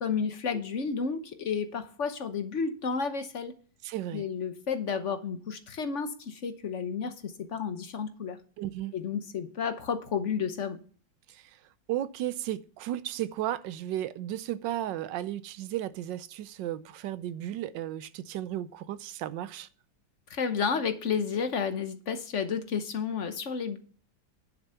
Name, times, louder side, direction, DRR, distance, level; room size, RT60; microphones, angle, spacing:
voice 1, 0.0-3.5 4.1-8.4 8.9-10.8 20.3-23.8, left 6 dB, 50° left, 1.0 m, -31 dB
voice 2, 3.8-4.3 8.6-8.9 11.3-11.6 11.9-19.7, right 12 dB, 75° right, 1.3 m, -34 dB
10.5 x 6.7 x 5.6 m
omnidirectional pair, 2.1 m